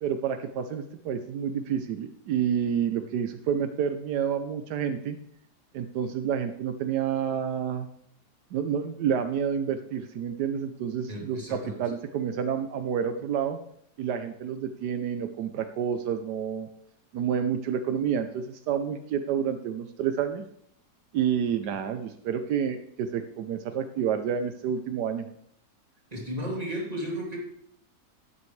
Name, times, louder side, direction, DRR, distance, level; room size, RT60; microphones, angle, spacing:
voice 1, 0.0-5.2 5.7-7.9 8.5-13.6 14.0-16.7 17.1-20.4 21.1-25.2, right 8 dB, 80° right, 8 dB, 1.3 m, -29 dB
voice 2, 11.1-11.8 21.6-21.7 26.1-27.4, equal, 25° right, -3 dB, 2.9 m, -34 dB
12.0 x 9.9 x 3.2 m, 0.70 s
omnidirectional pair, 1.7 m